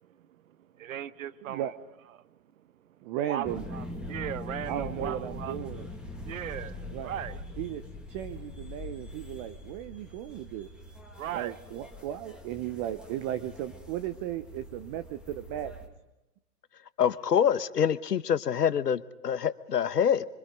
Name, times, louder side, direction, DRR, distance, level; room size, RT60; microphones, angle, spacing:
voice 1, 0.8-1.7 3.3-5.7 6.2-7.4 11.2-11.5, right 11 dB, 55° right, 1.2 m, -37 dB
voice 2, 1.4-1.7 3.0-3.6 4.7-5.9 6.9-7.1 7.6-7.8 8.1-10.7 11.3-15.7, right 12 dB, 25° right, 0.8 m, -35 dB
sound 1, 3.4-15.9, left 1 dB, ahead, 2.3 m, -42 dB
voice 3, 17.0-20.3, left 8 dB, 80° left, 1.2 m, -26 dB
26.5 x 25.0 x 5.2 m
hypercardioid pair, 125°, 48 cm